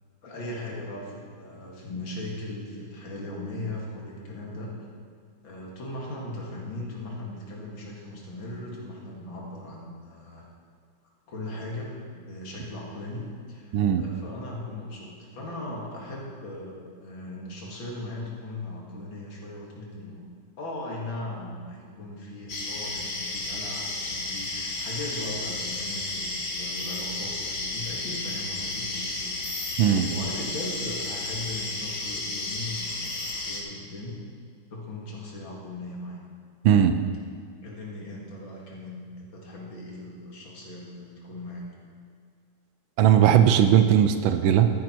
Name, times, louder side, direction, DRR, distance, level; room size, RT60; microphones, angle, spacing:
voice 1, 0.2-4.7 5.4-10.4 11.3-20.3 20.6-29.5 29.8-34.2 34.7-36.2 37.6-41.7, left 1 dB, 80° left, -3 dB, 2.9 m, -38 dB
sound 1, 22.5-33.6, left 2 dB, 45° left, 1.9 m, -32 dB
voice 2, 36.6-37.0 43.0-44.7, right 9 dB, 90° right, 9 dB, 1.5 m, -18 dB
13.5 x 10.5 x 4.5 m, 2.1 s
omnidirectional pair, 2.1 m